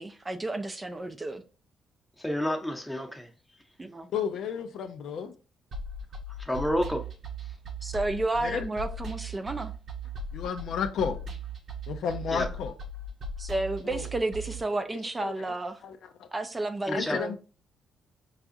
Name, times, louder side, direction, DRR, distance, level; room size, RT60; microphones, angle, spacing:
voice 1, 0.0-1.4 3.8-4.1 7.8-9.7 13.4-15.8 16.3-17.4, right 2 dB, 20° right, 0.4 m, -31 dB
voice 2, 2.2-3.3 6.4-7.0 12.3-12.5 16.9-17.2, equal, 5° left, 0.8 m, -29 dB
voice 3, 4.1-5.3 8.4-8.6 10.3-11.2 11.9-12.7 13.8-14.1 15.2-15.3 15.8-16.3 16.9-17.4, left 7 dB, 70° left, 0.4 m, -32 dB
sound 1, 5.7-14.6, right 1 dB, 50° right, 0.8 m, -38 dB
4.7 x 2.4 x 2.6 m
cardioid pair, 90°, 0 cm